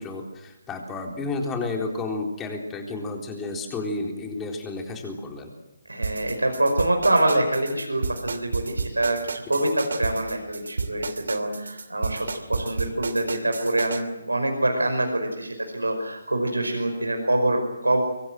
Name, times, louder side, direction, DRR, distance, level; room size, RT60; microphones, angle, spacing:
voice 1, 0.0-5.5, left 3 dB, 10° left, 2 dB, 3.9 m, -31 dB
voice 2, 5.9-18.0, right 1 dB, 90° right, 4 dB, 5.4 m, -25 dB
sound 1, 6.0-14.0, right 4 dB, 65° right, 2.7 m, -31 dB
25.5 x 24.0 x 7.8 m, 0.99 s
figure-of-eight pair, 145°, 0 cm